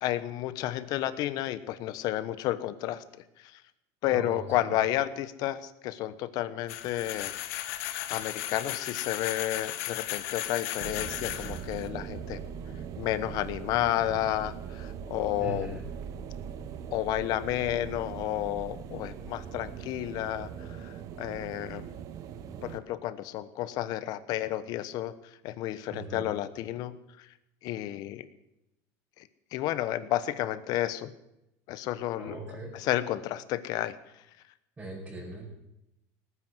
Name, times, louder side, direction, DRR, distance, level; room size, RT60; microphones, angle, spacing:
voice 1, 0.0-3.0 3.4-3.6 4.0-7.3 7.6-7.7 8.1-12.4 13.0-15.8 16.9-21.9 22.6-25.1 25.4-27.3 27.6-28.3 29.2-29.3 29.5-31.1 31.7-32.4 32.7-33.9, left 13 dB, 55° left, 14 dB, 1.2 m, -31 dB
voice 2, 4.1-4.7 15.4-15.8 25.9-26.3 32.2-32.8 34.8-35.5, right 2 dB, 15° right, -6 dB, 5.9 m, -40 dB
sound 1, 6.7-11.9, left 14 dB, 85° left, 1.3 m, -36 dB
sound 2, 10.8-22.8, right 8 dB, 45° right, 1.1 m, -41 dB
18.5 x 9.8 x 7.9 m, 0.87 s
cardioid pair, 140°, 8 cm